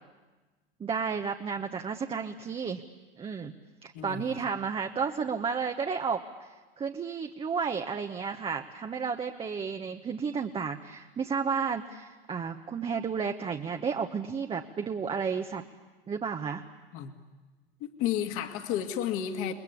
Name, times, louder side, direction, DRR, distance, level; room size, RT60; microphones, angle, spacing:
voice 1, 0.8-2.8 3.2-3.5 3.8-15.6 16.1-16.6, right 6 dB, 20° right, 4 dB, 1.1 m, -32 dB
voice 2, 3.9-4.3 16.9-17.1 17.8-19.5, left 10 dB, 45° left, 6 dB, 2.2 m, -32 dB
29.5 x 21.0 x 8.5 m, 1.2 s
hypercardioid pair, 95°, 30 cm